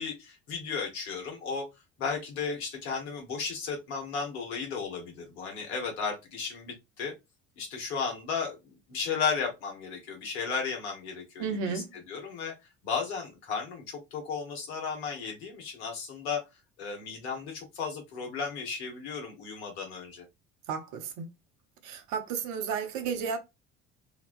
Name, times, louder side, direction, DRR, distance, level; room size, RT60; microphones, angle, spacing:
voice 1, 0.0-1.6 2.0-7.1 7.6-12.6 12.8-16.4 16.8-20.2, left 5 dB, 75° left, 1.1 m, -34 dB
voice 2, 11.4-11.9 20.7-21.3 21.8-23.4, right 6 dB, 65° right, 0.7 m, -33 dB
2.8 x 2.2 x 2.4 m
hypercardioid pair, 60°, 33 cm